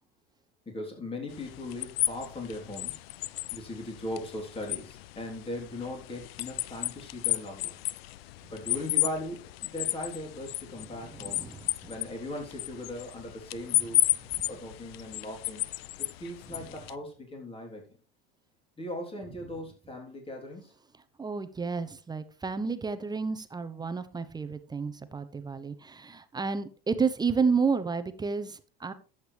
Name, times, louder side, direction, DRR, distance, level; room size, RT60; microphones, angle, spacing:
voice 1, 0.6-3.0 3.5-7.8 8.5-11.4 11.9-14.0 14.4-15.7 16.0-17.8 18.8-20.7, left 1 dB, 20° left, 1 dB, 3.5 m, -39 dB
sound 1, 1.3-16.9, left 17 dB, 85° left, 0.6 m, -33 dB
voice 2, 11.1-11.9 21.2-28.9, right 5 dB, 15° right, 11 dB, 0.8 m, -31 dB
11.5 x 8.1 x 3.4 m, 0.38 s
supercardioid pair, 115°, 29 cm